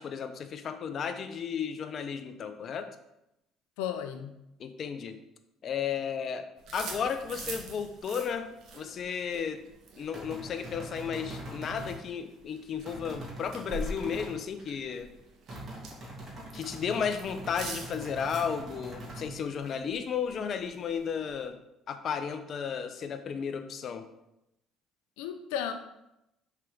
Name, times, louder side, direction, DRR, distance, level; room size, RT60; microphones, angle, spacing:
voice 1, 0.0-2.9 4.6-5.2 5.6-9.6 10.0-15.1 16.5-21.6 21.9-24.1, left 7 dB, 50° left, 9 dB, 0.7 m, -34 dB
voice 2, 3.8-4.4 25.2-25.7, left 9 dB, 85° left, 8 dB, 0.7 m, -34 dB
sound 1, 6.6-21.5, right 2 dB, 65° right, 1.5 m, -46 dB
sound 2, 10.1-12.0 12.9-14.3 15.5-19.3, right 1 dB, 45° right, 2.5 m, -43 dB
5.9 x 4.6 x 5.0 m, 0.86 s
supercardioid pair, 80°, 0 cm